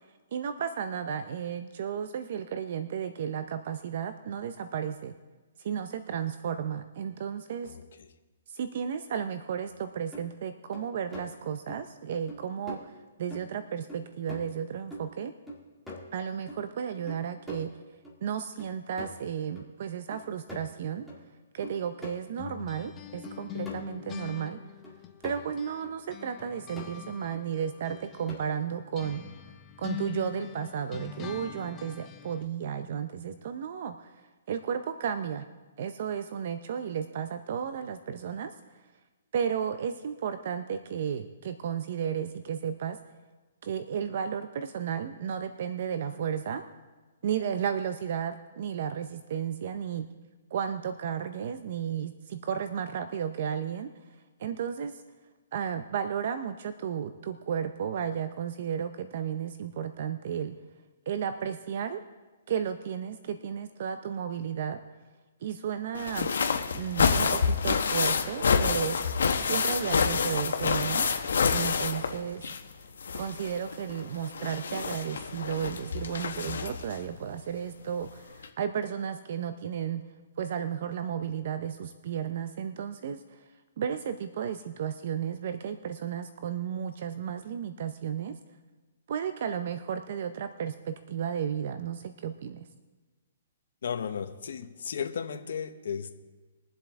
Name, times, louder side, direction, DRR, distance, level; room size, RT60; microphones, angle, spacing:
voice 1, 0.3-5.1 5.6-7.7 8.5-12.9 13.2-15.3 16.1-17.7 18.2-21.1 21.5-24.6 25.2-29.2 29.8-34.1 34.5-35.5 35.8-38.5 39.3-43.0 43.6-46.6 47.2-50.1 50.5-53.9 54.4-55.0 55.5-60.6 61.1-62.0 62.5-64.8 65.4-66.3 66.7-69.0 69.4-71.1 71.5-72.5 73.1-80.0 80.4-83.4 83.8-88.3 89.1-92.7, right 8 dB, 50° right, 10 dB, 0.5 m, -33 dB
voice 2, 7.6-8.1 93.8-96.1, left 7 dB, 65° left, 7 dB, 0.9 m, -35 dB
sound 1, 9.7-9.8 10.1-10.3 10.7-11.3 11.7-11.8 12.3-12.4 12.7-12.8 13.3-13.6 13.9-14.6 14.9-16.6 17.1-18.2 18.6-19.3 19.6-19.7 20.1-21.2 21.6-22.2 22.6-22.7 23.2-24.4 24.8-25.5 25.8-26.0 26.4-26.9 27.3-27.4 27.9-28.6, left 1 dB, ahead, 1.8 m, -44 dB
sound 2, 22.4-25.8 26.1-32.5, left 11 dB, 15° left, 0.6 m, -43 dB
sound 3, 65.9-72.7 73.0-76.9 78.0-78.1 78.4-78.5, left 5 dB, 85° left, 1.1 m, -28 dB
22.0 x 7.6 x 3.6 m, 1.3 s
hypercardioid pair, 165°, 0 cm